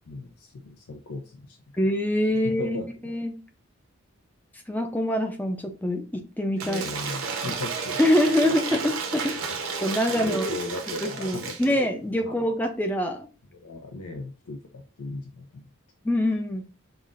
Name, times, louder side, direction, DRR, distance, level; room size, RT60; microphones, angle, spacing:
voice 1, 0.1-1.6 2.6-3.1 6.6-8.0 8.4-8.5 10.2-11.8 12.2-12.5 13.5-15.7, left 3 dB, 90° left, 2 dB, 0.6 m, -37 dB
voice 2, 1.8-2.8 3.0-3.4 4.7-6.8 8.0-9.4 9.8-10.5 11.0-13.3 16.0-16.6, left 1 dB, 10° left, 4 dB, 0.5 m, -25 dB
Cheering / Applause / Crowd, 6.6-11.8, right 5 dB, 65° right, 0.7 m, -32 dB
5.6 x 2.4 x 2.4 m, 0.33 s
head